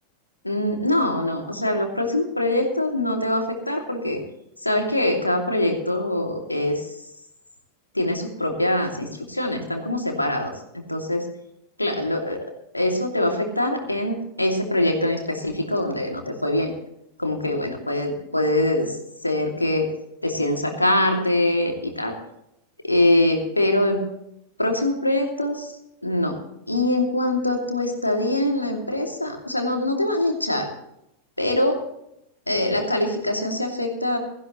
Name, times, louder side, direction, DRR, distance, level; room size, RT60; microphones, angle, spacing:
voice 1, 0.4-4.2 4.6-7.0 7.9-11.3 11.8-12.4 12.7-16.7 17.2-19.9 20.2-22.2 22.8-24.1 24.6-26.4 26.7-30.7 31.4-31.8 32.5-34.2, left 1 dB, 85° left, 3 dB, 2.7 m, -23 dB
17.0 x 15.0 x 3.2 m, 0.80 s
figure-of-eight pair, 90°, 0 cm